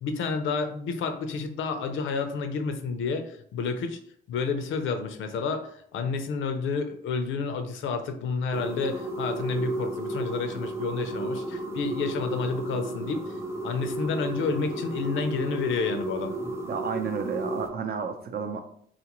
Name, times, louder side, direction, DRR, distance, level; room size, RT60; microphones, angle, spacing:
voice 1, 0.0-4.0 4.3-16.3, left 4 dB, 75° left, 7 dB, 0.5 m, -30 dB
sound 1, 8.5-17.7, right 1 dB, 15° right, 0.6 m, -33 dB
voice 2, 16.7-18.6, right 6 dB, 50° right, 6 dB, 0.6 m, -31 dB
3.8 x 2.5 x 2.9 m, 0.64 s
cardioid pair, 95°, 20 cm